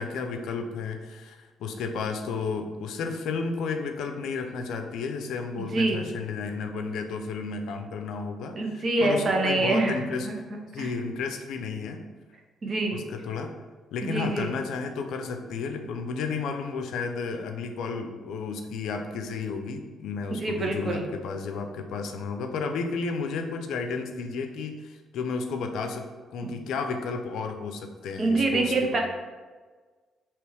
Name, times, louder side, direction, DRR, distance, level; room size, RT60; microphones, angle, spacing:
voice 1, 0.0-10.3 10.7-12.0 12.9-13.5 13.9-29.0, left 4 dB, 80° left, 5 dB, 0.5 m, -32 dB
voice 2, 5.7-6.1 8.6-10.0 10.8-10.9 12.6-13.0 14.0-14.5 20.3-21.1 26.4-26.5 28.2-29.0, right 2 dB, 45° right, 2 dB, 0.8 m, -25 dB
3.3 x 3.0 x 4.7 m, 1.4 s
cardioid pair, 90°, 0 cm